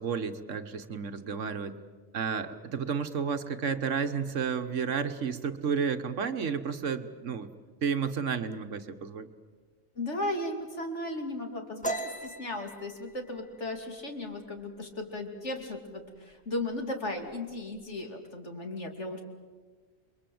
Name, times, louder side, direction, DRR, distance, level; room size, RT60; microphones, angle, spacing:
voice 1, 0.0-1.8 2.1-7.5 7.8-9.3, right 6 dB, 65° right, 9 dB, 1.4 m, -31 dB
voice 2, 9.9-19.2, left 1 dB, 55° left, 4 dB, 3.0 m, -36 dB
sound 1, 11.8-15.3 15.6-15.9 16.3-16.8 17.1-17.9, right 2 dB, 5° left, 1.7 m, -39 dB
29.0 x 22.5 x 7.8 m, 1.5 s
omnidirectional pair, 1.4 m